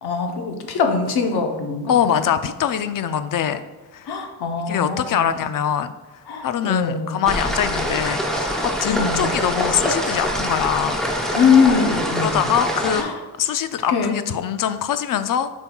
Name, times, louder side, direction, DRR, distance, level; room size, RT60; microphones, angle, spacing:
voice 1, 0.0-2.2 4.1-5.5 6.3-7.2 8.8-9.4 11.3-12.4 13.0-13.2 13.9-14.3, left 5 dB, 80° left, 4 dB, 0.9 m, -22 dB
voice 2, 1.9-3.6 3.9-4.1 4.7-5.9 6.4-11.0 12.2-13.0 13.4-15.5, left 9 dB, 60° left, 11 dB, 0.4 m, -23 dB
sound 1, 7.2-13.0, equal, ahead, 0.7 m, -24 dB
8.0 x 5.3 x 2.3 m, 1.2 s
wide cardioid pair, 120°, 38 cm